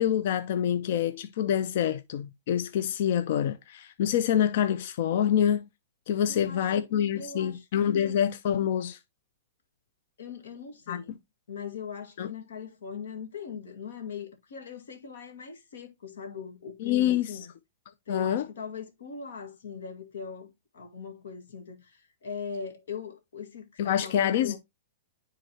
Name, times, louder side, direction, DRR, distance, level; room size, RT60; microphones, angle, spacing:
voice 1, 0.0-5.7 6.1-9.0 10.9-11.0 12.2-12.3 16.8-17.4 18.1-18.5 23.8-24.6, left 10 dB, 60° left, 0.6 m, -26 dB
voice 2, 6.3-6.9 7.2-8.1 10.2-11.2 11.5-17.5 18.1-24.6, left 6 dB, 80° left, 2.0 m, -40 dB
9.8 x 3.8 x 2.9 m
hypercardioid pair, 145°, 0 cm